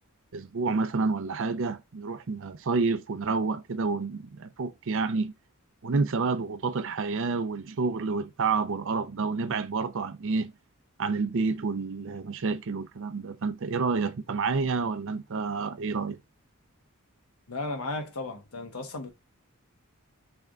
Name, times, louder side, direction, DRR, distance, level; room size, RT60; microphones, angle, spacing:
voice 1, 0.3-5.3 5.8-10.5 11.0-16.2, right 4 dB, 60° right, 0.6 m, -29 dB
voice 2, 17.5-19.1, left 2 dB, 80° left, 1.1 m, -35 dB
3.7 x 3.5 x 3.5 m
head